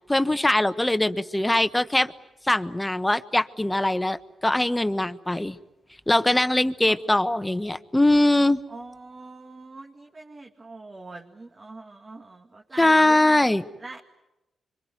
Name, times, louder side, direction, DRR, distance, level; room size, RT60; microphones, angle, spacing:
voice 1, 0.1-2.1 2.5-4.2 4.4-5.6 6.1-8.6 12.8-13.6, left 1 dB, 15° left, 12 dB, 1.2 m, -21 dB
voice 2, 8.7-13.4 13.8-14.0, right 3 dB, 35° right, 2 dB, 2.1 m, -42 dB
26.0 x 24.5 x 9.4 m, 0.98 s
cardioid pair, 65°, 0 cm